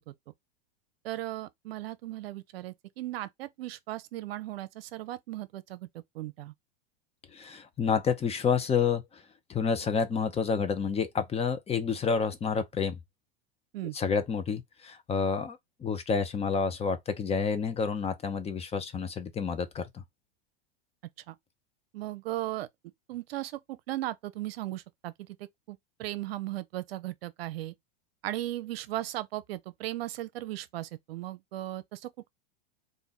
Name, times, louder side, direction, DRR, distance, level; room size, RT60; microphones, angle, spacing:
voice 1, 1.0-5.9 6.1-6.5 13.7-13.9 21.3-21.4 21.9-22.7 23.1-25.3 25.7-27.7 28.2-32.3, right 15 dB, 80° right, 0.6 m, -37 dB
voice 2, 7.3-9.0 9.5-13.0 13.9-19.9, left 6 dB, 20° left, 0.8 m, -29 dB
3.5 x 2.6 x 4.0 m
hypercardioid pair, 110°, 30 cm